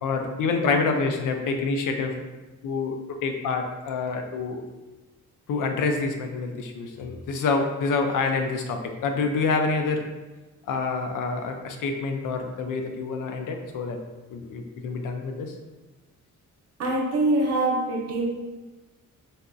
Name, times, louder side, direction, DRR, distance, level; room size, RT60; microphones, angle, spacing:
voice 1, 0.0-2.1 2.6-4.6 5.5-10.1 10.7-14.0 14.3-15.5, left 4 dB, 80° left, 4 dB, 0.5 m, -27 dB
voice 2, 16.8-18.3, right 2 dB, 55° right, -1 dB, 0.7 m, -24 dB
4.1 x 2.5 x 2.3 m, 1.2 s
wide cardioid pair, 160°, 31 cm